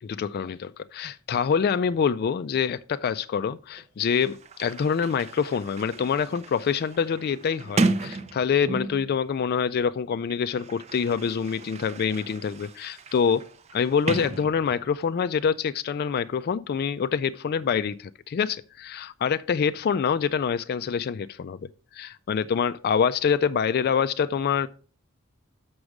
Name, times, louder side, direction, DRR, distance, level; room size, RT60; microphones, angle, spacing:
voice 1, 0.0-13.4 13.7-21.6 21.9-24.7, left 6 dB, 45° left, 0.3 m, -26 dB
Sliding door, 3.8-9.1 10.1-15.0, right 3 dB, 30° right, 0.5 m, -33 dB
6.4 x 6.1 x 4.7 m
head